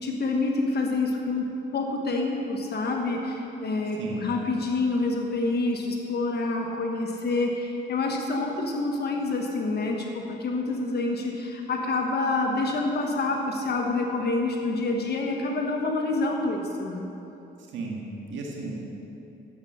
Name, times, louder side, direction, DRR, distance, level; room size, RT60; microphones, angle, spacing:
voice 1, 0.0-17.1, left 3 dB, 55° left, 1 dB, 1.3 m, -27 dB
voice 2, 4.0-4.3 17.7-18.7, right 3 dB, 75° right, -2 dB, 1.8 m, -34 dB
12.0 x 8.5 x 5.6 m, 2.9 s
cardioid pair, 90°, 20 cm